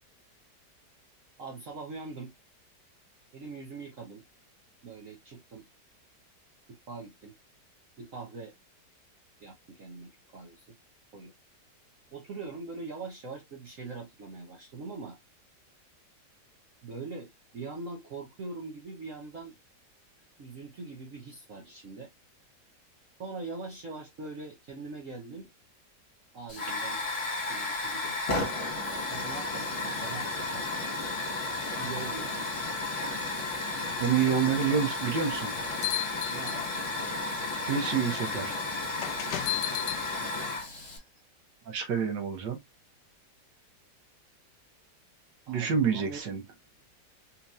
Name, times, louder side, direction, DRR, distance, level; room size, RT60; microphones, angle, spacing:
voice 1, 1.4-2.3 3.3-4.2 4.8-5.7 6.7-7.3 8.0-8.5 9.4-10.8 11.1-11.3 12.1-15.2 16.8-19.6 20.4-22.1 23.2-25.5 26.3-27.0 27.5-28.2 29.1-30.7 31.8-32.5 36.3-36.7 40.3-41.1 45.5-46.2, right 3 dB, 55° right, 1.2 m, -42 dB
Hiss / Fire, 26.5-41.0, left 3 dB, 40° left, 1.3 m, -33 dB
voice 2, 34.0-35.5 37.6-38.5 41.7-42.6 45.5-46.4, right 7 dB, 80° right, 1.7 m, -28 dB
sound 1, 35.3-37.0 37.8-38.0 39.0-40.0, left 14 dB, 80° left, 1.2 m, -34 dB
4.4 x 2.9 x 2.4 m
omnidirectional pair, 1.9 m